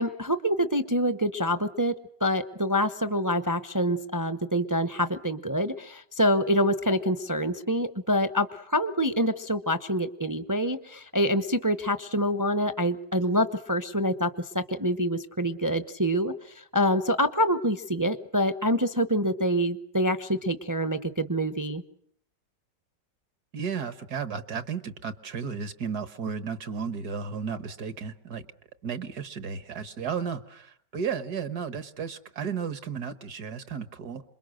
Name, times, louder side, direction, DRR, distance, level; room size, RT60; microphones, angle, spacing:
voice 1, 0.0-1.9 2.2-16.3 16.7-21.8, equal, 15° right, 11 dB, 0.6 m, -26 dB
voice 2, 23.5-28.5 28.8-34.2, right 6 dB, 70° right, 12 dB, 1.8 m, -34 dB
27.5 x 22.5 x 6.5 m, 0.65 s
omnidirectional pair, 1.8 m